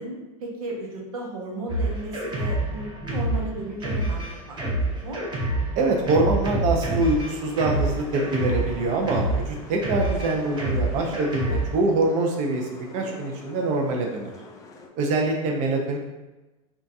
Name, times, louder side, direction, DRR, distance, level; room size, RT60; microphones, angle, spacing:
voice 1, 0.0-5.2, right 1 dB, 90° right, 0 dB, 0.7 m, -35 dB
Drum kit, 1.7-11.8, right 1 dB, 25° right, 0.9 m, -27 dB
voice 2, 5.7-14.3 15.0-16.0, right 2 dB, 45° right, 1 dB, 0.6 m, -24 dB
sound 1, 6.9-14.9, left 4 dB, 20° left, 0.3 m, -44 dB
3.7 x 2.3 x 2.7 m, 1.1 s
hypercardioid pair, 115°, 18 cm